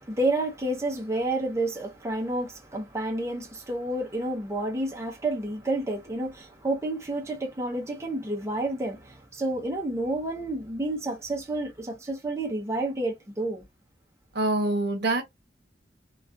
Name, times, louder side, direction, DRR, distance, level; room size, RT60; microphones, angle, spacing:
voice 1, 0.0-13.6, right 2 dB, 15° right, 0.5 m, -30 dB
voice 2, 14.3-15.2, right 2 dB, 65° right, 0.8 m, -25 dB
2.3 x 2.3 x 2.4 m
head